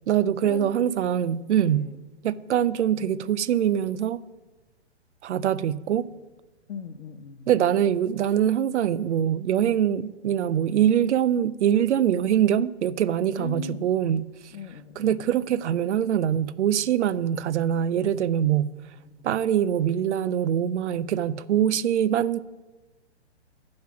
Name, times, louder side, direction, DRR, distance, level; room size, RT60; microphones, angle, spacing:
voice 1, 0.1-1.9 2.2-4.2 5.2-6.1 7.5-14.3 15.0-18.7 19.2-22.4, right 10 dB, 85° right, 0.5 m, -23 dB
voice 2, 1.7-2.0 6.7-7.5 13.4-13.9 14.5-15.3 19.0-19.4 21.7-21.8, left 6 dB, 80° left, 0.8 m, -40 dB
8.6 x 6.5 x 5.8 m
hypercardioid pair, 160°, 34 cm